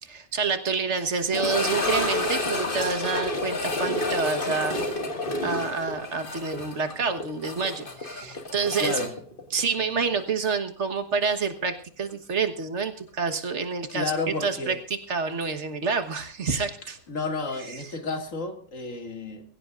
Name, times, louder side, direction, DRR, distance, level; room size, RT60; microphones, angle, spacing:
voice 1, 0.0-4.8 5.4-9.0 9.5-17.0 17.7-17.8, right 5 dB, 65° right, 7 dB, 1.7 m, -28 dB
sound 1, 1.3-10.2 10.5-10.6 11.2-11.3 13.9-14.0, left 2 dB, 45° left, 2.2 m, -30 dB
voice 2, 8.7-9.1 13.9-14.8 17.1-19.4, left 3 dB, 85° left, 5 dB, 2.7 m, -31 dB
23.0 x 15.5 x 2.5 m, 0.43 s
omnidirectional pair, 1.3 m